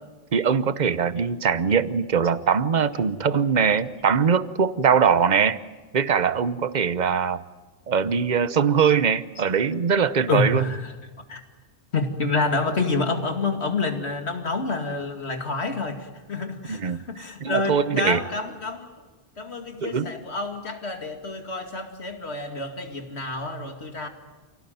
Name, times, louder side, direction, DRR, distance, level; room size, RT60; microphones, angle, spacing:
voice 1, 0.3-5.6 5.9-7.4 7.9-10.6 16.7-17.1 17.4-18.2 19.8-20.1, right 6 dB, 45° right, 14 dB, 1.0 m, -22 dB
voice 2, 10.3-10.8 11.3-11.4 11.9-18.9 19.4-24.1, left 3 dB, 90° left, 5 dB, 2.6 m, -28 dB
28.5 x 17.5 x 9.3 m, 1.3 s
omnidirectional pair, 1.1 m